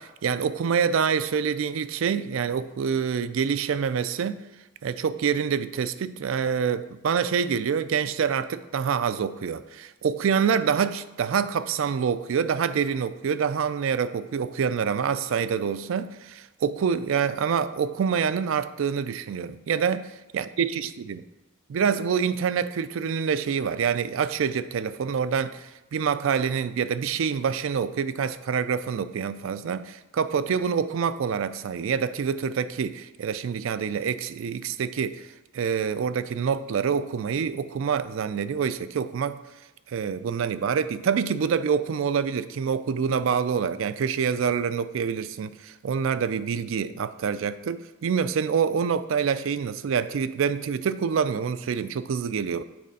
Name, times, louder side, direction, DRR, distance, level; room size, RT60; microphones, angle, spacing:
voice 1, 0.0-4.4 4.8-21.2 21.7-35.3 35.5-39.4 39.9-52.6, right 6 dB, 80° right, 0.4 m, -26 dB
7.7 x 4.1 x 5.3 m
head